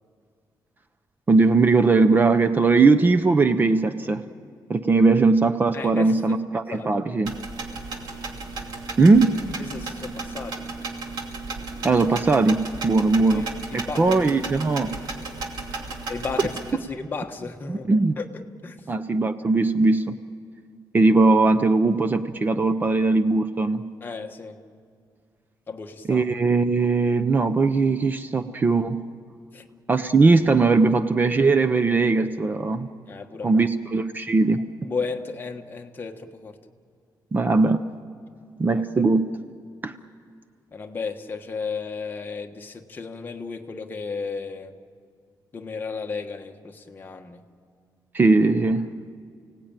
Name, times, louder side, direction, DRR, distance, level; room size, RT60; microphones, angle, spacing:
voice 1, 1.3-4.2 4.7-7.3 9.0-9.3 11.8-13.4 13.7-14.9 17.7-18.1 18.9-20.2 20.9-23.9 26.1-29.0 29.9-32.9 33.4-34.6 37.3-37.8 38.6-39.2 39.8-39.9 48.1-48.8, right 3 dB, 25° right, 10 dB, 0.6 m, -19 dB
voice 2, 5.7-6.4 6.7-7.0 9.7-10.7 13.1-14.2 14.5-14.6 16.1-18.3 18.6-18.9 24.0-24.6 25.7-26.2 29.5-29.7 33.1-33.7 34.8-36.6 40.7-44.8 45.5-47.5, left 4 dB, 25° left, 4 dB, 1.3 m, -34 dB
sound 1, 7.2-16.7, right 3 dB, 65° right, 2.6 m, -34 dB
29.5 x 18.0 x 9.0 m, 2.2 s
wide cardioid pair, 175°, 8 cm